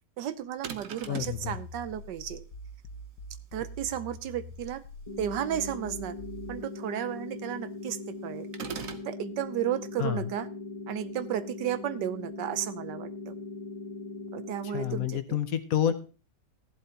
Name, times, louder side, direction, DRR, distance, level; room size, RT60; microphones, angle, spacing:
voice 1, 0.2-2.4 3.5-4.8 5.2-6.1 6.5-8.5 9.0-10.5 10.9-13.3 14.3-15.4, right 11 dB, 85° right, 14 dB, 1.4 m, -33 dB
sound 1, 0.6-1.4 8.5-9.1, right 7 dB, 55° right, 1.2 m, -38 dB
voice 2, 1.1-1.6 10.0-10.3 14.6-15.9, left 10 dB, 60° left, 11 dB, 1.2 m, -29 dB
sound 2, 1.2-6.7, equal, 85° left, 1.6 m, -44 dB
sound 3, 5.1-15.1, left 3 dB, 20° left, 1.2 m, -40 dB
15.0 x 11.0 x 2.9 m, 0.33 s
omnidirectional pair, 1.8 m